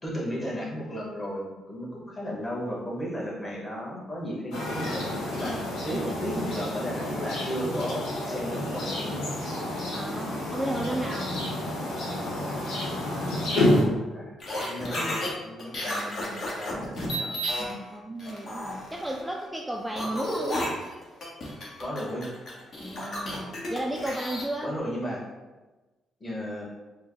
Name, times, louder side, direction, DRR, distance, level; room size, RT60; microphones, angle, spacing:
voice 1, 0.0-9.3 12.5-12.6 13.1-17.8 21.8-22.3 24.6-25.3 26.2-26.6, equal, 25° left, -4 dB, 1.3 m, -35 dB
sound 1, 4.5-13.8, left 1 dB, 85° left, 1.0 m, -29 dB
voice 2, 5.5-6.7 9.9-11.4 15.9-16.5 17.9-20.7 22.8-24.8, right 1 dB, 10° right, -1 dB, 0.3 m, -34 dB
sound 2, 14.4-15.3 15.6-17.7 18.2-19.4 20.0-24.5, equal, 50° left, 1.1 m, -32 dB
4.5 x 2.1 x 3.1 m, 1.2 s
cardioid pair, 90°, 0 cm